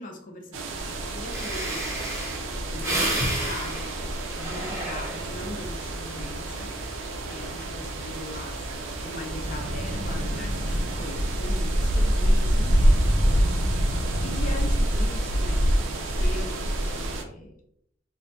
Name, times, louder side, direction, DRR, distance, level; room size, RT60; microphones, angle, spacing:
voice 1, 0.0-2.2 2.5-6.7 7.3-8.6 9.0-13.0 14.2-17.5, left 1 dB, 40° left, 2 dB, 0.5 m, -40 dB
sound 1, 0.5-17.2, right 1 dB, 85° right, 0.5 m, -27 dB
Breathing, 1.0-1.1 1.3-5.5 6.0-6.4, right 1 dB, 15° right, 0.6 m, -30 dB
Thunder / Rain, 3.4-17.0, equal, 85° left, 1.2 m, -37 dB
3.8 x 2.1 x 2.8 m, 0.71 s
head